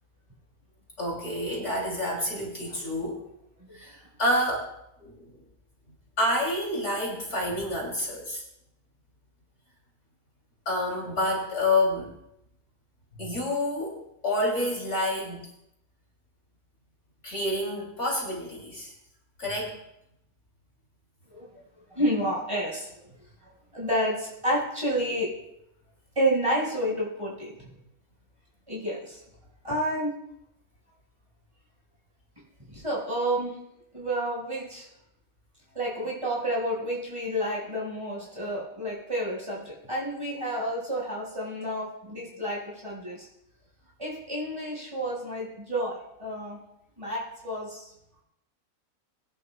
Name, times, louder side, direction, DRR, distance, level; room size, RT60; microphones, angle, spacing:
voice 1, 1.0-3.2 3.7-4.7 5.0-5.4 6.2-8.4 10.6-12.1 13.1-15.5 17.2-18.9 19.4-19.7, left 1 dB, 50° left, -2 dB, 3.0 m, -28 dB
voice 2, 21.9-25.3 26.1-27.5 28.7-29.2 29.6-30.1 32.7-33.6 33.9-34.9 35.7-43.3 44.0-46.6 47.0-47.9, right 1 dB, 20° right, -5 dB, 4.8 m, -30 dB
21.5 x 11.0 x 2.2 m, 0.80 s
omnidirectional pair, 1.5 m